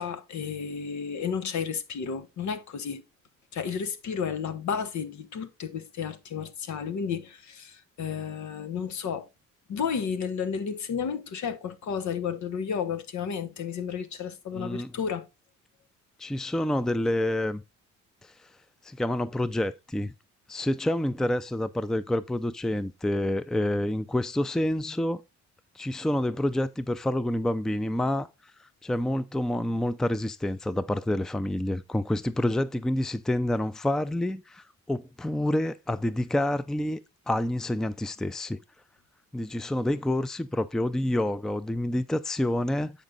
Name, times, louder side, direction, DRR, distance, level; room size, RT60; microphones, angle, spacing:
voice 1, 0.0-3.0 3.5-9.3 9.7-15.3, left 7 dB, 70° left, 1.3 m, -32 dB
voice 2, 14.5-14.9 16.2-17.6 18.8-20.1 20.5-25.2 25.7-38.6 39.3-42.9, left 1 dB, ahead, 0.5 m, -28 dB
8.5 x 5.2 x 3.8 m
cardioid pair, 90°, 30 cm